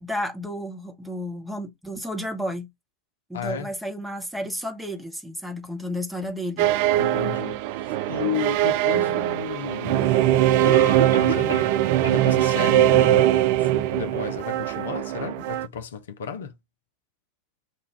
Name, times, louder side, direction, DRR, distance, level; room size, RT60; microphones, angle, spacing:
voice 1, 0.0-2.7 3.3-6.7, equal, 5° right, 1.0 m, -32 dB
voice 2, 3.3-3.7 7.0-10.2 11.1-11.8 12.1-16.5, left 7 dB, 60° left, 0.6 m, -33 dB
sound 1, 6.6-15.7, right 13 dB, 50° right, 0.3 m, -21 dB
Cough, 9.5-9.6 10.6-11.8 12.0-12.2 12.7-12.8 13.4-13.5, right 1 dB, 75° right, 1.4 m, -29 dB
5.8 x 2.3 x 3.2 m
figure-of-eight pair, 90°, 0 cm